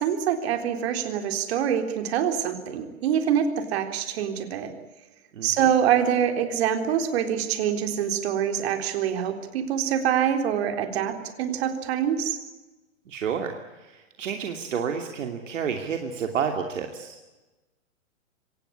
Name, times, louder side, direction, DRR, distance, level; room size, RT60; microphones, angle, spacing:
voice 1, 0.0-4.7 5.4-12.4, right 9 dB, 50° right, 7 dB, 3.8 m, -25 dB
voice 2, 5.4-5.7 13.1-13.5 13.8-17.3, right 7 dB, 65° right, 5 dB, 2.8 m, -30 dB
25.0 x 18.5 x 9.9 m, 1.1 s
hypercardioid pair, 125°, 40 cm